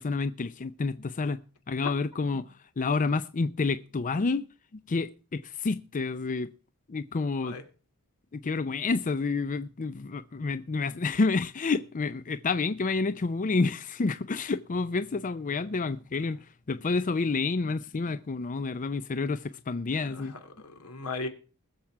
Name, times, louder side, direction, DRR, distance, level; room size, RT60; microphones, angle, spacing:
voice 1, 0.0-1.4 1.7-2.4 2.8-4.5 4.9-6.5 6.9-7.6 8.3-20.3, left 4 dB, 35° left, 0.5 m, -29 dB
voice 2, 20.0-21.3, left 3 dB, 80° left, 2.6 m, -38 dB
20.5 x 7.2 x 4.6 m
head